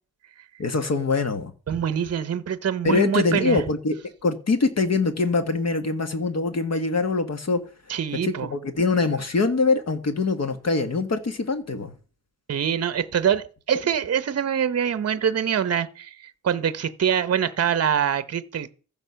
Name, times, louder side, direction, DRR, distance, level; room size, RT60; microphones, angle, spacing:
voice 1, 0.6-1.5 2.8-4.0 4.2-7.6 8.2-11.9, left 3 dB, 50° left, 1.6 m, -23 dB
voice 2, 1.7-3.6 7.9-8.5 12.5-18.7, right 8 dB, 45° right, 0.7 m, -24 dB
14.5 x 5.7 x 5.7 m
wide cardioid pair, 130°, 34 cm